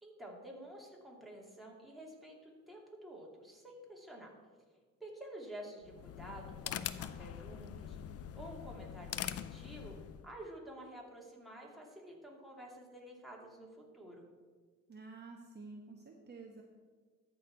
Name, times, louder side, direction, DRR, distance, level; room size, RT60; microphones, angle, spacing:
voice 1, 0.0-4.3 5.0-10.0 10.2-14.2, right 1 dB, ahead, -3 dB, 2.5 m, -50 dB
sound 1, 5.8-10.3, left 10 dB, 55° left, 0.5 m, -43 dB
voice 2, 14.9-16.6, right 3 dB, 35° right, 1 dB, 1.0 m, -50 dB
13.5 x 4.7 x 4.6 m, 1.5 s
cardioid pair, 90°, 30 cm